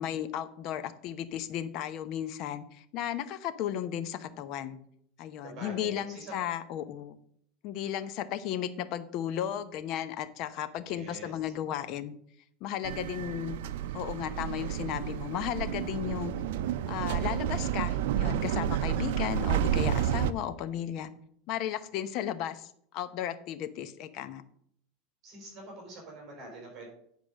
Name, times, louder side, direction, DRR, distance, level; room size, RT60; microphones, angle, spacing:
voice 1, 0.0-4.8 5.2-7.2 7.6-12.1 12.6-13.6 13.9-16.3 16.9-21.1 21.5-24.4, left 10 dB, 45° left, 12 dB, 0.8 m, -35 dB
voice 2, 5.4-6.3 10.9-11.4 18.8-18.9 25.2-26.9, right 2 dB, 35° right, 0 dB, 4.8 m, -45 dB
sound 1, 12.8-20.3, right 10 dB, 80° right, 0.6 m, -30 dB
10.0 x 5.1 x 6.3 m, 0.66 s
supercardioid pair, 150°, 0 cm